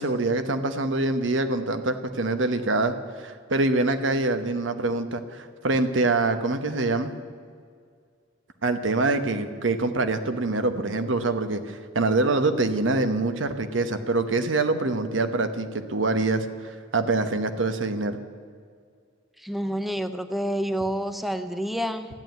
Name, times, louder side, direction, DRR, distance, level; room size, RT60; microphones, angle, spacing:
voice 1, 0.0-7.1 8.6-18.2, right 2 dB, 80° right, 9 dB, 1.1 m, -25 dB
voice 2, 19.4-22.1, equal, ahead, 9 dB, 0.5 m, -28 dB
13.5 x 9.4 x 9.1 m, 2.1 s
head